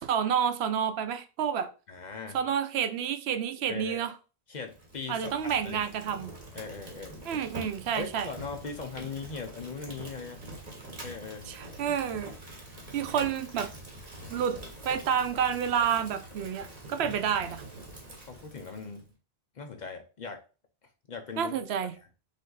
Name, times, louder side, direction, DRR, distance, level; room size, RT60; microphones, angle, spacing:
voice 1, 0.0-1.7 2.3-4.1 5.1-6.3 7.2-8.3 11.5-12.3 12.9-13.7 14.3-14.6 14.8-17.6 21.4-21.9, right 8 dB, 80° right, 0.8 m, -29 dB
voice 2, 1.9-2.4 3.7-4.1 4.5-5.9 6.5-7.3 7.9-10.4 11.0-11.5 13.1-13.2 17.0-17.2 18.3-19.1 19.5-20.4 21.1-21.5, left 5 dB, 50° left, 0.7 m, -40 dB
Fire, 4.6-19.0, right 1 dB, 40° right, 1.4 m, -45 dB
5.2 x 2.6 x 3.9 m
omnidirectional pair, 1.1 m